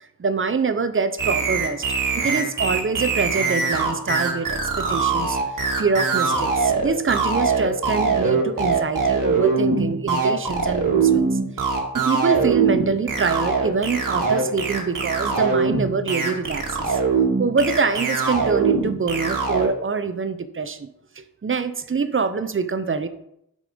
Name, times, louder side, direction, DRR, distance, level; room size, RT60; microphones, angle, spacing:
voice 1, 0.0-1.9 2.1-5.4 5.8-11.4 12.1-17.0 17.4-20.9 21.2-23.1, right 5 dB, 35° right, 12 dB, 0.7 m, -25 dB
sound 1, 1.2-19.7, right 4 dB, 65° right, 1.7 m, -22 dB
6.5 x 5.4 x 5.0 m, 0.76 s
cardioid pair, 65°, 35 cm